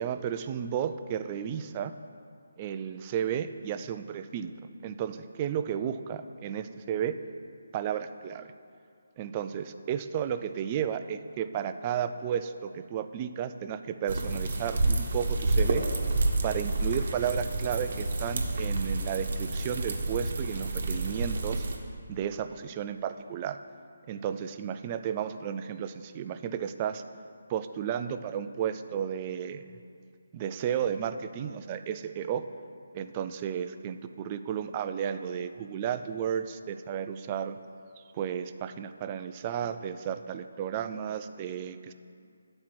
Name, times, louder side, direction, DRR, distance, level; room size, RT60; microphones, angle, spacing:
voice 1, 0.0-1.9 2.6-4.5 4.8-7.2 7.7-8.5 9.2-15.8 16.4-21.6 22.1-23.6 24.1-27.0 27.5-29.6 30.3-32.4 32.9-37.6 38.1-41.9, right 8 dB, 25° right, 10 dB, 0.3 m, -33 dB
sound 1, 14.1-21.8, right 2 dB, 55° right, 1.0 m, -29 dB
10.0 x 4.4 x 6.0 m, 2.3 s
figure-of-eight pair, 160°, 0 cm